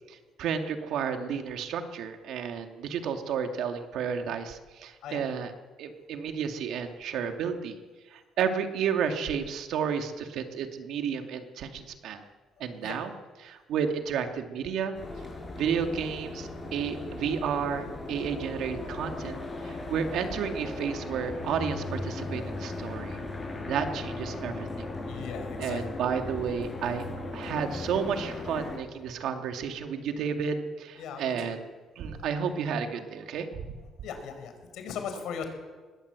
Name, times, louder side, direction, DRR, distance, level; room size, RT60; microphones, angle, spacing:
voice 1, 0.1-5.5 5.8-7.8 8.1-12.2 12.6-13.1 13.4-15.0 15.6-19.4 19.6-23.2 23.7-24.9 25.6-27.1 27.3-31.7 32.0-33.5, right 7 dB, 70° right, 5 dB, 2.1 m, -32 dB
sound 1, 14.9-28.8, left 2 dB, 20° left, 6.8 m, -37 dB
voice 2, 25.0-25.8 31.0-31.5 34.0-35.5, left 7 dB, 75° left, 6 dB, 4.7 m, -38 dB
20.5 x 16.5 x 8.0 m, 1.4 s
cardioid pair, 140°, 0 cm